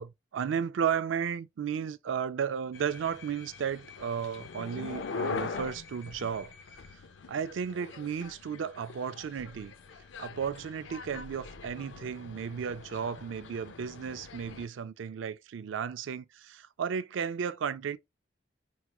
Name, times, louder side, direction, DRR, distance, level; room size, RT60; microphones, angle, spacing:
voice 1, 0.0-6.5 6.9-7.0 7.3-9.7 10.2-18.0, right 7 dB, 90° right, 0.4 m, -34 dB
sound 1, 2.7-14.7, left 4 dB, 80° left, 0.5 m, -42 dB
4.6 x 3.0 x 2.2 m
head